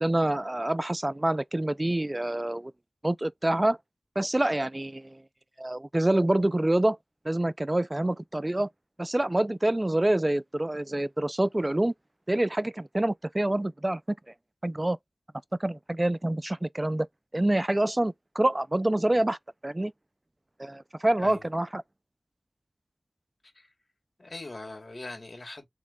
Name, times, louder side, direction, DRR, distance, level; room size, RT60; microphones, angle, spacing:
voice 1, 0.0-2.7 3.0-3.8 4.2-5.2 5.6-7.0 7.3-8.7 9.0-11.9 12.3-14.0 14.6-15.0 15.6-17.1 17.3-19.4 19.6-19.9 20.6-21.8, right 1 dB, 25° right, 0.3 m, -26 dB
voice 2, 21.2-21.5 23.6-23.7 24.2-25.7, left 2 dB, 55° left, 1.7 m, -41 dB
3.6 x 3.0 x 3.5 m
wide cardioid pair, 50°, 0 cm